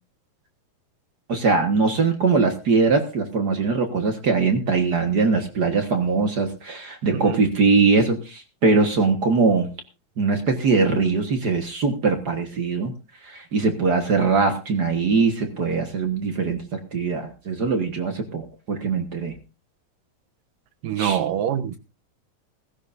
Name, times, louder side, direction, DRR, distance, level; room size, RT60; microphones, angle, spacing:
voice 1, 1.3-9.7 10.2-12.9 13.2-19.3 21.0-21.2, right 4 dB, 55° right, 1.1 m, -21 dB
voice 2, 20.8-21.8, right 10 dB, 80° right, 2.4 m, -25 dB
17.0 x 16.0 x 2.6 m
omnidirectional pair, 4.0 m